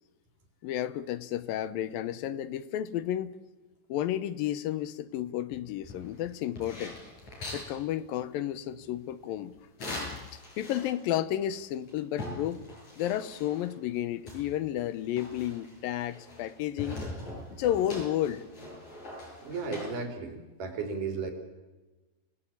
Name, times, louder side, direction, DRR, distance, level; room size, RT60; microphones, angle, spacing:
voice 1, 0.6-3.4 3.9-7.0 7.5-9.6 9.8-12.6 13.0-17.0 17.5-18.4, left 12 dB, 80° left, 2.6 m, -32 dB
sound 1, 5.8-7.7 9.8-11.1 11.5-11.6 11.9-13.7 14.3-16.5 16.8-19.8, left 1 dB, 55° left, 9.3 m, -42 dB
voice 2, 19.2-21.3, right 4 dB, 65° right, 4.8 m, -35 dB
29.5 x 18.5 x 8.6 m
omnidirectional pair, 4.1 m